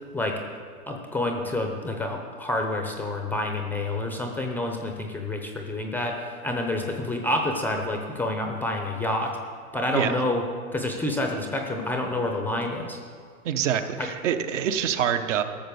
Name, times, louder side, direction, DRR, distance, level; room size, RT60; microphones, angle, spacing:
voice 1, 0.9-9.4 9.7-10.4 10.7-13.0 14.0-14.1, left 1 dB, 5° left, 3 dB, 0.6 m, -28 dB
voice 2, 13.4-15.4, right 9 dB, 55° right, 8 dB, 1.1 m, -25 dB
13.0 x 6.6 x 6.8 m, 2.2 s
hypercardioid pair, 125°, 43 cm